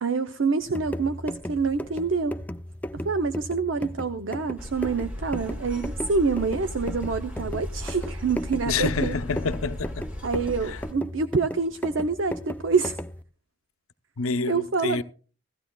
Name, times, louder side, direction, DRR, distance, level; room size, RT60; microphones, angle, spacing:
voice 1, 0.0-2.4 2.9-9.1 10.2-13.0 14.5-15.0, right 4 dB, 65° right, 0.6 m, -26 dB
sound 1, 0.6-13.2, equal, 10° left, 0.4 m, -36 dB
sound 2, 4.6-10.9, left 1 dB, 10° right, 1.9 m, -36 dB
voice 2, 8.7-10.1 10.7-10.8 14.2-15.0, left 4 dB, 90° left, 0.6 m, -28 dB
16.5 x 14.5 x 2.3 m
head